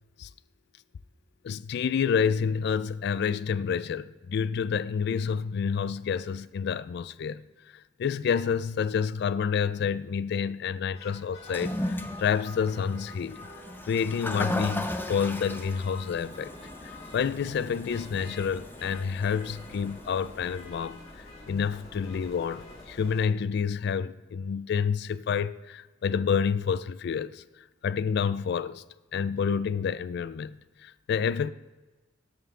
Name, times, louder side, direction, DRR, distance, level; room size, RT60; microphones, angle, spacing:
voice 1, 1.4-7.4 7.7-13.4 13.9-16.5 17.1-27.4 27.8-28.8 29.1-30.6 30.8-31.5, left 6 dB, 60° left, 0.3 m, -29 dB
sound 1, 10.9-23.2, left 2 dB, 35° left, 2.7 m, -47 dB
Toilet flush, 11.4-20.7, left 1 dB, 10° left, 0.6 m, -37 dB
12.5 x 5.5 x 3.7 m
head